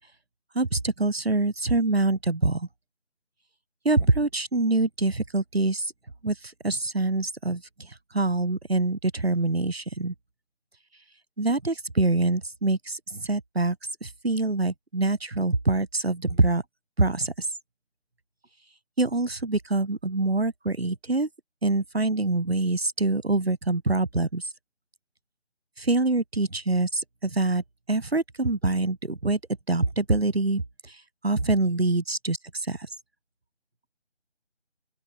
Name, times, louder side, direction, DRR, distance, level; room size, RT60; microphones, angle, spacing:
voice 1, 0.5-2.7 3.8-5.9 6.2-10.1 11.4-13.8 14.0-16.6 17.0-17.5 19.0-21.3 21.6-24.5 25.8-27.6 27.9-29.4 29.7-32.4 32.7-32.9, right 2 dB, 55° right, 5.2 m, -25 dB
open air
figure-of-eight pair, 175°, 36 cm